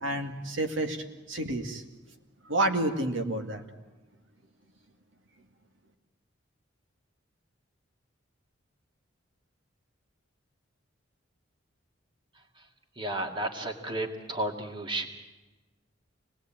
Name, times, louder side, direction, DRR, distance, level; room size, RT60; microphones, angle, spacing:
voice 1, 0.0-1.8 2.4-3.6, right 1 dB, 80° right, 5 dB, 2.1 m, -30 dB
voice 2, 12.3-12.7 13.0-15.1, right 1 dB, 25° right, 2 dB, 2.2 m, -33 dB
27.5 x 19.5 x 8.9 m, 1.2 s
head